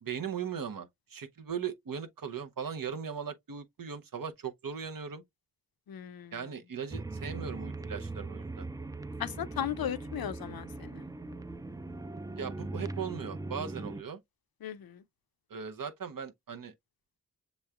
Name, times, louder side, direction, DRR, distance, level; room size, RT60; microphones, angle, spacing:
voice 1, 0.0-5.2 6.3-8.7 12.4-14.2 15.5-16.7, right 7 dB, 70° right, 0.7 m, -38 dB
voice 2, 5.9-6.3 9.2-11.0 14.6-15.0, left 10 dB, 80° left, 0.5 m, -36 dB
sound 1, 6.9-14.0, right 2 dB, 10° right, 0.3 m, -40 dB
6.7 x 3.1 x 2.3 m
wide cardioid pair, 60°, 35 cm